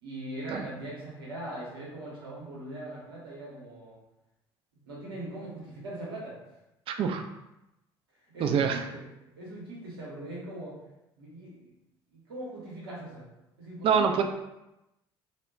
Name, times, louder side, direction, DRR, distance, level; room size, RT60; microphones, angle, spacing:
voice 1, 0.0-4.0 4.9-6.4 8.3-9.0 9.4-10.8 11.2-11.7 12.1-13.3 13.6-14.2, right 1 dB, 80° right, -5 dB, 0.8 m, -40 dB
voice 2, 6.9-7.2 8.4-8.8 13.8-14.2, right 6 dB, 45° right, 6 dB, 0.4 m, -25 dB
2.2 x 2.0 x 3.5 m, 0.94 s
hypercardioid pair, 60°, 12 cm